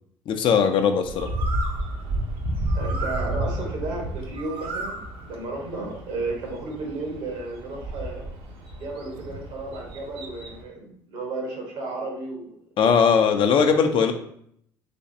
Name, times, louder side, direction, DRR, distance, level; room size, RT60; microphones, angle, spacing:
voice 1, 0.3-1.3 12.8-14.1, left 6 dB, 55° left, 6 dB, 0.5 m, -19 dB
Bird, 1.0-10.6, right 1 dB, 60° right, 0.7 m, -31 dB
voice 2, 2.7-8.3 8.8-12.6, right 2 dB, 75° right, -1 dB, 1.3 m, -33 dB
3.4 x 3.1 x 2.7 m, 0.67 s
hypercardioid pair, 65°, 10 cm